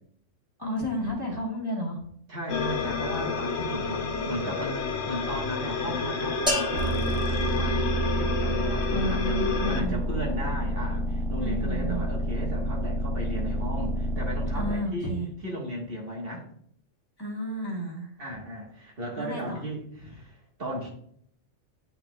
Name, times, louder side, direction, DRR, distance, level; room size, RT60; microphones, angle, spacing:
voice 1, 0.6-2.0 3.8-4.6 8.9-10.0 11.4-12.1 14.6-15.3 17.2-18.1 19.2-19.6, equal, 20° left, -4 dB, 1.7 m, -32 dB
voice 2, 2.3-9.4 9.7-15.2 15.4-16.5 18.2-20.9, equal, 50° right, -2 dB, 1.6 m, -36 dB
sound 1, 2.5-9.8, left 4 dB, 65° left, 1.0 m, -30 dB
sound 2, 6.5-8.4, left 1 dB, 5° right, 1.0 m, -33 dB
sound 3, 6.7-14.7, right 1 dB, 75° right, 1.2 m, -29 dB
11.0 x 4.3 x 2.3 m, 0.66 s
omnidirectional pair, 1.3 m